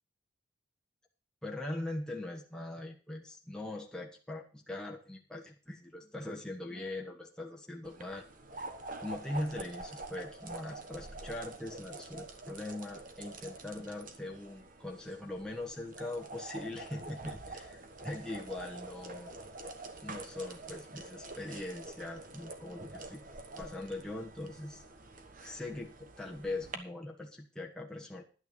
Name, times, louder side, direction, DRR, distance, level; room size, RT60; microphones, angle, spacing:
voice 1, 1.4-8.3 9.0-19.3 20.0-23.2 23.6-24.8 25.4-28.2, left 2 dB, 5° left, -1 dB, 1.2 m, -41 dB
sound 1, 7.8-26.8, right 2 dB, 40° right, 1.2 m, -47 dB
11.0 x 9.4 x 5.3 m, 0.38 s
head